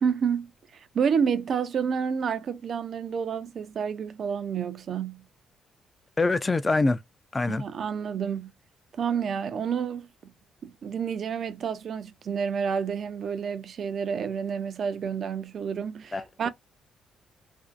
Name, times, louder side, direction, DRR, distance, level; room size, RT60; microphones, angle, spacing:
voice 1, 0.0-5.2 7.5-8.5 9.0-10.1 10.6-16.5, right 7 dB, 55° right, 0.4 m, -29 dB
voice 2, 6.2-7.0 7.3-7.6 16.1-16.5, left 3 dB, 25° left, 0.3 m, -25 dB
2.5 x 2.1 x 2.4 m
cardioid pair, 90°, 0 cm